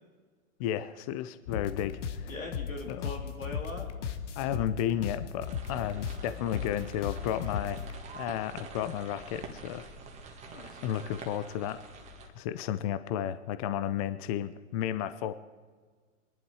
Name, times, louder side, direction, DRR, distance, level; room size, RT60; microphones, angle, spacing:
voice 1, 0.6-2.3 2.9-3.1 4.4-7.8 8.1-9.9 10.6-11.8 12.4-15.3, left 10 dB, 30° left, 13 dB, 0.5 m, -33 dB
sound 1, 1.5-8.0, left 7 dB, 65° left, 1.4 m, -37 dB
voice 2, 2.3-4.0 10.4-10.8, left 2 dB, 90° left, 1 dB, 3.5 m, -41 dB
sound 2, 5.4-12.3, right 3 dB, 15° right, 1.9 m, -47 dB
22.5 x 11.5 x 4.8 m, 1.5 s
hypercardioid pair, 130°, 39 cm